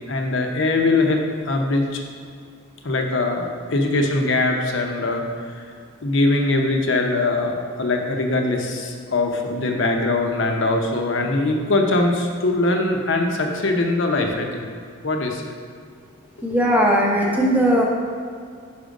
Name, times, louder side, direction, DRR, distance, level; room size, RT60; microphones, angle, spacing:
voice 1, 0.1-2.0 2.8-5.2 5.5-5.6 6.0-14.7 15.0-15.4, left 2 dB, 60° left, 2 dB, 0.7 m, -21 dB
voice 2, 16.4-17.8, equal, 10° right, -2 dB, 0.7 m, -18 dB
5.5 x 5.1 x 5.2 m, 2.2 s
head